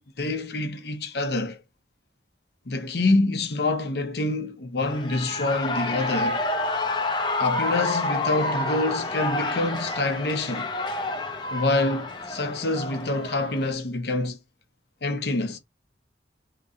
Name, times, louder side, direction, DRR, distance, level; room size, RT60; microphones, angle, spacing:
voice 1, 0.0-1.6 2.7-6.4 7.4-10.7 11.5-14.4 15.0-15.6, left 2 dB, 65° left, 0.8 m, -26 dB
Shout / Cheering, 4.8-13.7, left 2 dB, 25° left, 0.5 m, -29 dB
3.0 x 2.4 x 3.7 m
head